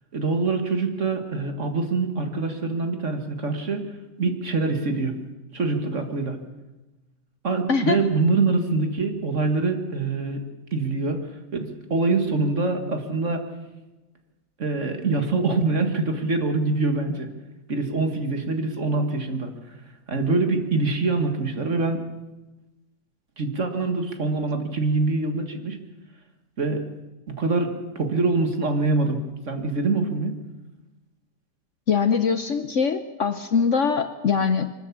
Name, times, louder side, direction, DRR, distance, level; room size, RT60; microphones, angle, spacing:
voice 1, 0.1-5.1 5.5-6.4 7.4-10.4 10.7-11.3 11.5-13.5 14.6-17.3 17.7-19.5 20.1-22.0 23.4-25.8 26.6-26.8 27.3-29.2 29.5-30.4, right 3 dB, 45° right, 6 dB, 2.0 m, -24 dB
voice 2, 7.7-8.0 31.9-34.7, left 6 dB, 55° left, 10 dB, 1.0 m, -22 dB
23.5 x 13.0 x 8.5 m, 1.1 s
omnidirectional pair, 1.8 m